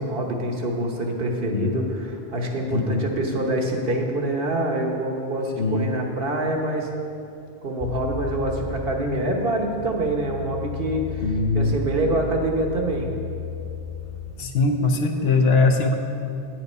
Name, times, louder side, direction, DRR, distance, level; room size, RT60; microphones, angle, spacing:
voice 1, 0.0-6.9 7.6-13.1, right 1 dB, 60° right, 1 dB, 1.3 m, -26 dB
sound 1, 7.8-14.3, left 4 dB, 45° left, 0.4 m, -34 dB
voice 2, 11.2-11.8 14.4-16.0, left 3 dB, 70° left, 4 dB, 1.0 m, -21 dB
9.2 x 7.6 x 5.4 m, 2.6 s
omnidirectional pair, 1.1 m